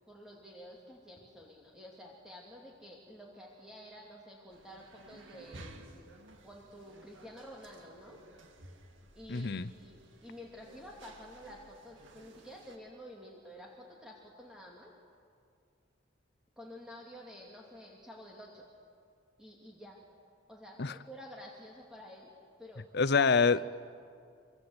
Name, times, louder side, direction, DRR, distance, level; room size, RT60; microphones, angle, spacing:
voice 1, 0.1-6.1 6.4-8.2 9.1-14.9 16.6-18.7 19.4-20.0 20.5-22.3 22.6-22.8 23.2-23.3, equal, 5° right, -2 dB, 2.6 m, -50 dB
sound 1, 4.5-12.8, right 2 dB, 75° right, 2.2 m, -55 dB
voice 2, 9.3-9.7 20.8-20.9 22.9-23.6, left 5 dB, 60° left, 14 dB, 0.7 m, -26 dB
26.5 x 25.5 x 8.1 m, 2.3 s
head